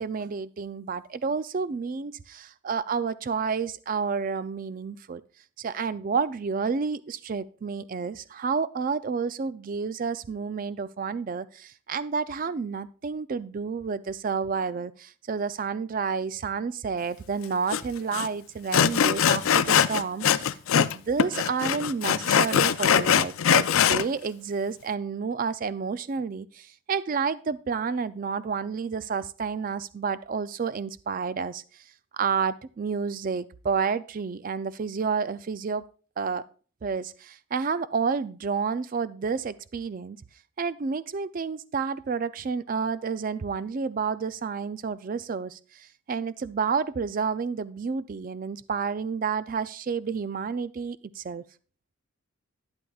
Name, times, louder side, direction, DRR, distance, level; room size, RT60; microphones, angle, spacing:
voice 1, 0.0-5.2 5.6-31.6 32.1-35.8 36.2-36.5 36.8-40.2 40.6-51.4, right 5 dB, 40° right, 15 dB, 0.3 m, -30 dB
Sawing, 17.7-17.8 18.1-18.3 18.7-20.9 21.2-24.0, left 8 dB, 75° left, 0.4 m, -22 dB
12.0 x 9.8 x 2.3 m, 0.39 s
head